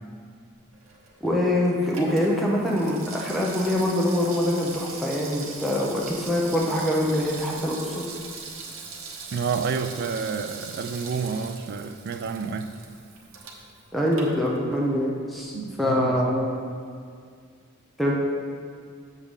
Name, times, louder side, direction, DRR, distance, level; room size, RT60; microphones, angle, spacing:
Water tap faucet / Sink (filling or washing), 0.7-15.0 15.3-15.4, right 4 dB, 70° right, 0.9 m, -41 dB
voice 1, 1.2-8.1 13.9-16.5 18.0-18.2, left 1 dB, ahead, 0.7 m, -24 dB
voice 2, 9.3-12.7 15.5-16.4, right 5 dB, 50° right, 0.3 m, -29 dB
7.4 x 6.5 x 3.6 m
head